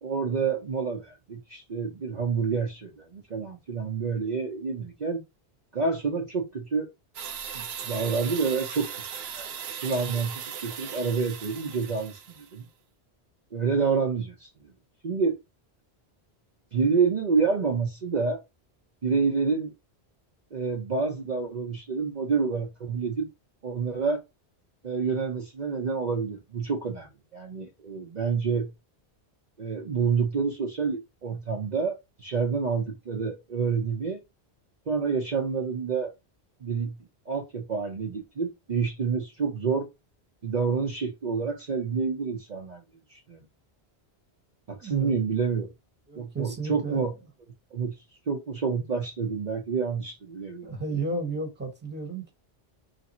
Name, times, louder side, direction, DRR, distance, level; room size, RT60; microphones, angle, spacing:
voice 1, 0.0-5.2 5.7-6.9 7.5-9.1 9.3-9.5 9.8-12.7 13.5-14.7 15.0-15.4 16.7-18.4 19.0-19.7 20.5-23.3 23.6-24.2 24.8-28.7 29.6-34.2 34.9-36.1 36.6-36.9 37.3-39.9 40.4-42.8 43.1-43.4 44.7-45.7 46.2-47.1 47.7-47.9 48.3-50.7, right 5 dB, 45° right, 0.8 m, -28 dB
sound 1, 7.1-12.5, right 7 dB, 75° right, 0.9 m, -38 dB
voice 2, 44.8-45.1 46.1-47.0 50.6-52.3, right 3 dB, 10° right, 1.1 m, -32 dB
3.3 x 2.7 x 4.1 m
omnidirectional pair, 1.1 m